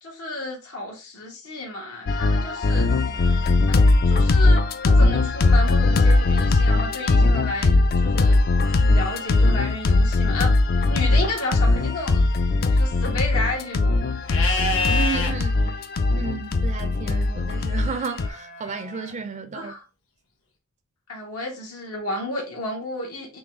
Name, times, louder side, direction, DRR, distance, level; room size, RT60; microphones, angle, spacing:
voice 1, 0.0-2.8 4.0-8.4 8.7-12.2 12.7-14.0 19.5-19.8 21.1-23.4, left 2 dB, 85° left, 1.4 m, -32 dB
sound 1, 2.1-18.3, left 2 dB, 45° left, 0.4 m, -20 dB
voice 2, 2.8-3.7 14.9-15.7 16.2-19.7, right 5 dB, 30° right, 0.4 m, -33 dB
Livestock farm animals working animals, 14.3-15.3 18.2-19.1, left 3 dB, 60° left, 1.1 m, -27 dB
3.9 x 3.0 x 3.6 m
head